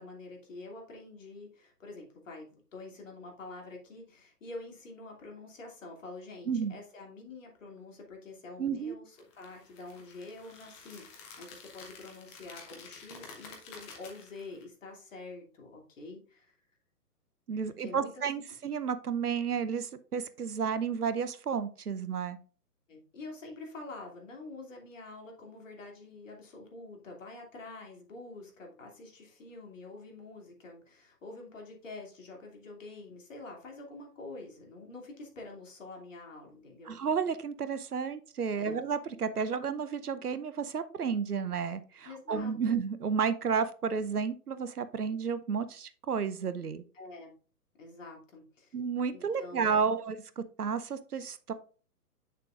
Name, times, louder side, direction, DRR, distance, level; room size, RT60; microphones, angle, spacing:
voice 1, 0.0-16.6 17.8-18.1 22.9-37.0 38.6-38.8 42.0-42.8 46.9-47.3 47.8-48.7 49.1-50.0, left 3 dB, 50° left, 1 dB, 2.7 m, -47 dB
voice 2, 8.6-8.9 17.5-22.4 36.9-46.8 48.7-51.5, right 6 dB, 70° right, 13 dB, 0.8 m, -32 dB
sound 1, 9.2-14.6, left 4 dB, 15° left, 1.1 m, -50 dB
8.1 x 6.6 x 2.4 m, 0.40 s
figure-of-eight pair, 130°, 48 cm